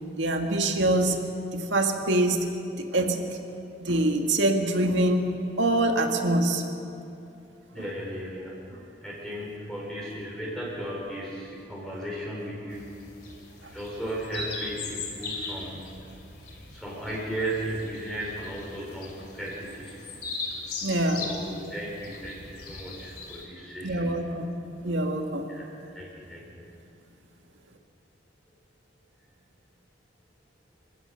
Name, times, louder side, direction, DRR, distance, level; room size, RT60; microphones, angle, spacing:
voice 1, 0.2-1.2 1.5-2.4 2.7-3.2 3.8-5.2 5.6-6.6 20.8-21.2 23.8-24.5 24.8-25.5, right 1 dB, 85° right, 3 dB, 2.0 m, -24 dB
voice 2, 7.7-13.0 13.7-15.9 16.7-20.0 21.2-24.0 25.5-25.6 25.9-26.6, right 1 dB, 5° left, -5 dB, 4.5 m, -36 dB
sound 1, 12.7-23.4, left 3 dB, 55° left, 3.2 m, -39 dB
26.5 x 16.0 x 6.5 m, 2.8 s
head